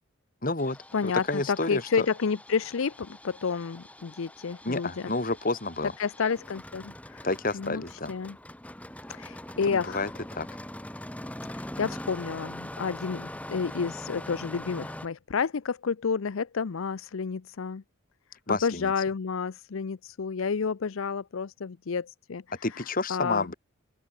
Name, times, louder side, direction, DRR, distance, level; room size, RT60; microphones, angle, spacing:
voice 1, 0.4-0.8 1.0-2.1 4.6-5.9 7.2-8.2 9.7-10.5 18.5-18.9 22.6-23.5, left 2 dB, 40° left, 2.2 m, -30 dB
Engine starting, 0.6-15.1, left 1 dB, 5° left, 1.5 m, -42 dB
voice 2, 0.9-5.1 6.0-7.3 7.5-8.4 9.1-10.1 11.5-17.8 18.5-22.4 22.7-23.5, left 5 dB, 80° left, 0.6 m, -30 dB
open air
head